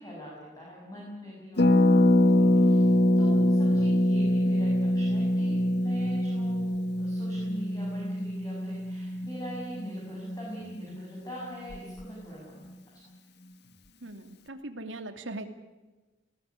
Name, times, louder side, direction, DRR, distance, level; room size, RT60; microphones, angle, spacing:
voice 1, 0.0-2.9 3.2-6.7 7.0-12.8, equal, 20° left, -4 dB, 7.1 m, -43 dB
Harp, 1.6-11.2 11.4-11.5 11.7-12.0, left 1 dB, 60° left, 1.5 m, -24 dB
voice 2, 3.3-3.7 14.0-15.5, right 2 dB, 85° right, 7 dB, 2.7 m, -40 dB
21.0 x 18.0 x 9.6 m, 1.2 s
head